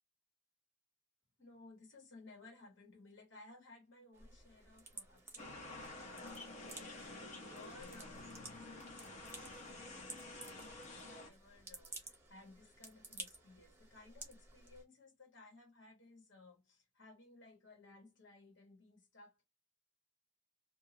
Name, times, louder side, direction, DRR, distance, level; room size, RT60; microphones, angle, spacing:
voice 1, 1.4-19.4, left 3 dB, 70° left, 1.5 m, -60 dB
sound 1, 4.1-14.8, right 3 dB, 10° right, 0.8 m, -54 dB
sound 2, 5.4-11.3, left 2 dB, 40° left, 1.0 m, -50 dB
2.7 x 2.4 x 2.8 m
head